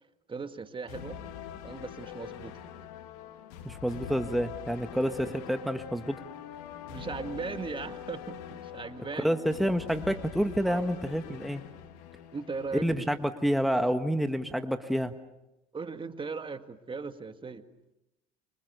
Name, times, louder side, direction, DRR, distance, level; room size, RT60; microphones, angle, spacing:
voice 1, 0.3-1.2 1.6-2.5 6.9-9.3 10.7-10.9 12.3-13.1 15.7-17.6, right 4 dB, 25° right, 9 dB, 1.9 m, -38 dB
sound 1, 0.9-12.8, left 9 dB, 80° left, 2.7 m, -43 dB
voice 2, 3.6-6.2 9.2-11.6 12.7-15.1, equal, ahead, 7 dB, 1.6 m, -28 dB
28.5 x 25.5 x 6.8 m, 0.90 s
supercardioid pair, 80°, 20 cm